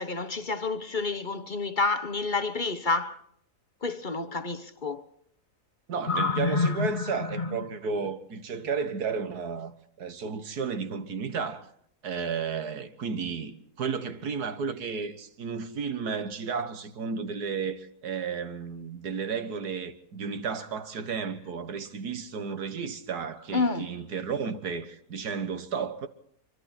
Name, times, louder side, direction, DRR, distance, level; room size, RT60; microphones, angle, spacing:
voice 1, 0.0-3.2 3.8-5.0 6.1-7.6 23.5-23.9, left 3 dB, 35° left, 1.0 m, -29 dB
voice 2, 5.9-11.7 12.0-26.1, right 5 dB, 85° right, 2.0 m, -33 dB
25.0 x 24.5 x 4.3 m
omnidirectional pair, 1.6 m